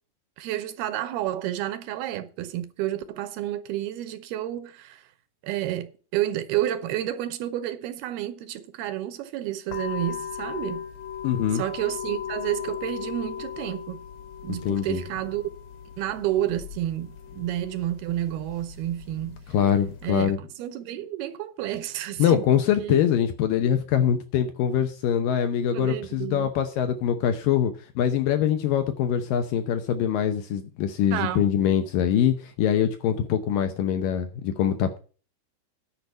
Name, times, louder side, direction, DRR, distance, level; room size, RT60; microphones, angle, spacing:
voice 1, 0.4-5.0 5.4-10.8 11.5-14.0 14.4-15.4 16.0-19.4 20.0-23.0 25.7-26.5 31.1-31.5, right 13 dB, 75° right, 2.6 m, -30 dB
sound 1, 9.7-20.3, left 8 dB, 50° left, 2.3 m, -38 dB
voice 2, 11.2-11.6 14.6-15.0 19.5-20.4 22.2-35.0, left 9 dB, 75° left, 2.2 m, -23 dB
10.5 x 5.2 x 8.1 m
omnidirectional pair, 4.7 m